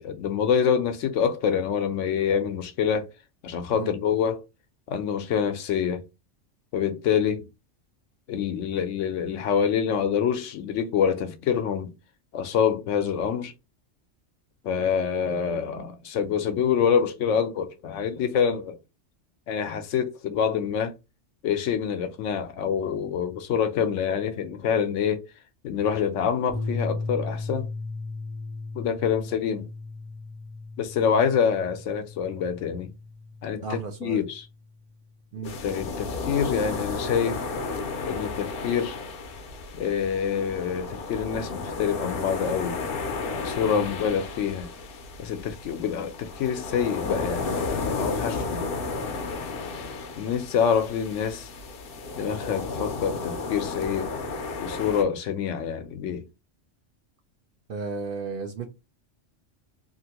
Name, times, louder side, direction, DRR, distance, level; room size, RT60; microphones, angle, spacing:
voice 1, 0.0-3.1 3.4-4.4 4.9-6.0 6.7-7.5 8.3-11.9 12.3-13.5 14.6-18.8 19.5-20.9 21.4-25.3 25.6-27.7 28.7-29.7 30.8-32.9 33.4-34.5 35.6-37.4 38.0-39.0 39.7-42.8 43.4-44.7 45.2-48.7 50.2-51.5 52.2-54.1 54.6-56.2, left 7 dB, 85° left, 0.9 m, -26 dB
sound 1, 26.5-34.9, left 3 dB, 80° right, 1.2 m, -36 dB
voice 2, 33.6-34.2 35.3-35.5 43.6-43.9 57.7-58.7, right 4 dB, 60° right, 0.6 m, -34 dB
sound 2, 35.4-55.0, left 4 dB, 60° left, 0.7 m, -33 dB
2.8 x 2.6 x 2.8 m
omnidirectional pair, 1.3 m